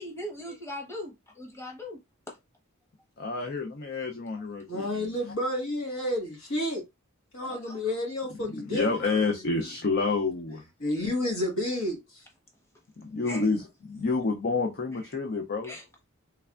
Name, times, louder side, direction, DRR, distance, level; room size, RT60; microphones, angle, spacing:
voice 1, 0.0-2.0 2.3-2.4 3.9-4.1 7.4-7.8 10.9-11.3 13.2-13.5 15.6-15.8, left 1 dB, 15° left, 1.0 m, -40 dB
voice 2, 3.2-5.1 8.4-10.6 13.0-15.7, left 3 dB, 50° left, 0.5 m, -29 dB
voice 3, 4.7-6.8 7.3-9.6 10.8-12.2, left 1 dB, 70° left, 1.5 m, -31 dB
3.4 x 3.3 x 2.4 m
head